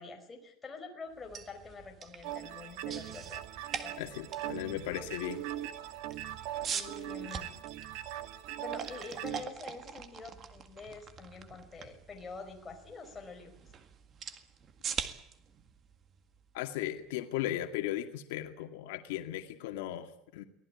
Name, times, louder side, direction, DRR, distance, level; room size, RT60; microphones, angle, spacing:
voice 1, 0.0-3.4 3.7-4.0 6.7-7.6 8.6-13.5, left 4 dB, 15° left, 3 dB, 5.1 m, -46 dB
sound 1, 1.1-17.1, right 7 dB, 30° right, 1.9 m, -44 dB
sound 2, 2.2-9.4, right 13 dB, 60° right, 1.8 m, -41 dB
voice 2, 4.0-5.4 16.5-20.4, left 13 dB, 85° left, 6 dB, 2.2 m, -37 dB
24.0 x 19.0 x 9.8 m, 0.73 s
cardioid pair, 165°, 0 cm